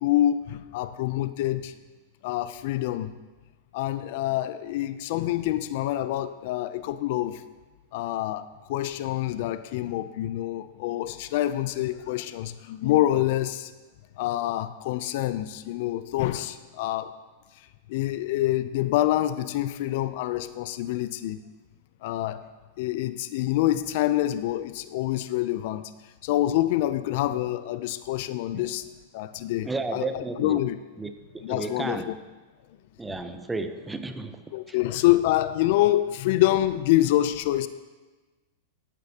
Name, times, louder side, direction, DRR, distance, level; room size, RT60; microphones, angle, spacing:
voice 1, 0.0-1.7 2.2-3.1 3.7-7.4 7.9-13.7 14.2-17.1 17.9-21.4 22.0-22.4 22.8-25.9 26.2-28.8 29.1-30.8 31.4-32.2 34.5-37.7, left 14 dB, 60° left, 13 dB, 0.4 m, -26 dB
voice 2, 29.6-30.6 31.0-31.1 31.5-32.1 33.0-34.8, right 2 dB, 10° right, 9 dB, 0.6 m, -33 dB
13.5 x 8.7 x 2.8 m, 1.2 s
hypercardioid pair, 125°, 0 cm